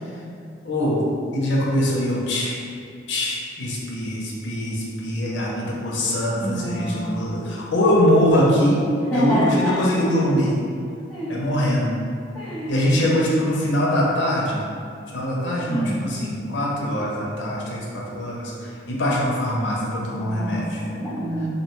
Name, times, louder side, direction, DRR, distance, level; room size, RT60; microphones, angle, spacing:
voice 1, 0.6-1.0 1.3-2.6 3.1-8.8 9.1-10.6 11.3-12.0 12.7-14.6 15.1-20.8, equal, 80° left, -4 dB, 0.6 m, -22 dB
voice 2, 6.4-7.3 9.1-10.1 11.1-11.4 12.3-13.0 15.7-16.1 20.2-21.5, equal, 10° left, -12 dB, 0.4 m, -27 dB
2.5 x 2.2 x 2.9 m, 2.4 s
head